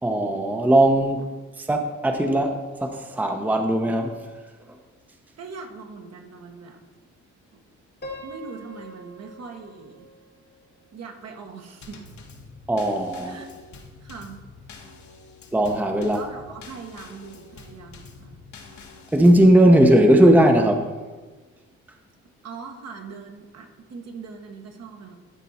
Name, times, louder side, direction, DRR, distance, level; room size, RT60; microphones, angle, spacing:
voice 1, 0.0-1.2 1.6-4.3 12.7-13.4 15.5-16.2 19.1-20.9, right 1 dB, 5° right, 4 dB, 0.8 m, -18 dB
voice 2, 5.4-6.8 7.5-7.6 8.2-10.1 10.9-12.0 13.2-13.5 14.0-14.4 16.1-18.4 22.4-25.2, right 4 dB, 60° right, 3 dB, 1.4 m, -41 dB
Piano, 8.0-11.0, equal, 35° left, 1.2 m, -43 dB
Drum kit / Snare drum / Bass drum, 11.8-19.5, left 4 dB, 65° left, 1.5 m, -46 dB
12.5 x 4.5 x 4.2 m, 1.3 s
cardioid pair, 90°, 30 cm